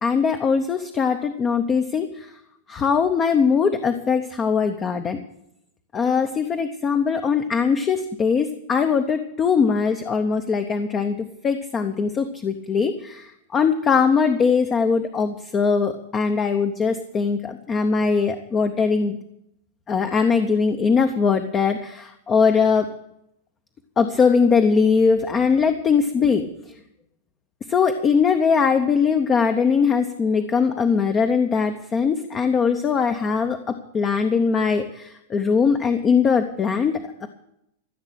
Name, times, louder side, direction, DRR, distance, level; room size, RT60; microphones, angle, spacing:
voice 1, 0.0-2.3 2.7-5.2 5.9-19.2 19.9-23.0 24.0-26.5 27.7-37.3, left 5 dB, 15° left, 7 dB, 0.7 m, -21 dB
14.5 x 7.4 x 9.8 m, 0.76 s
supercardioid pair, 175°, 0 cm